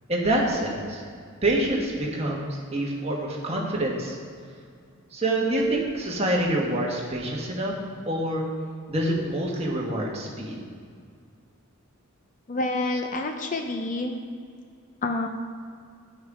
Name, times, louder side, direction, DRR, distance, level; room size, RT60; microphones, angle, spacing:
voice 1, 0.1-1.0 1.4-4.2 5.1-7.7 8.1-8.4 8.9-10.6, right 1 dB, 30° right, -2 dB, 1.5 m, -26 dB
voice 2, 12.5-14.2 15.0-15.3, left 2 dB, 40° left, 5 dB, 0.6 m, -28 dB
10.0 x 6.2 x 4.9 m, 2.2 s
head